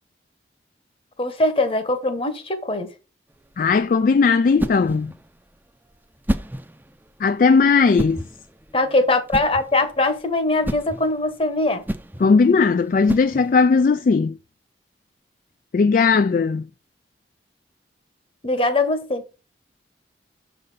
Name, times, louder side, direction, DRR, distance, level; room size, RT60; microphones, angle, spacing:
voice 1, 1.2-2.9 8.7-11.8 18.4-19.2, left 2 dB, 30° left, 1.1 m, -21 dB
sound 1, 3.3-13.8, equal, 10° right, 0.6 m, -32 dB
voice 2, 3.6-5.1 7.2-8.2 12.2-14.4 15.7-16.6, left 4 dB, 50° left, 0.3 m, -17 dB
6.5 x 4.1 x 4.9 m
head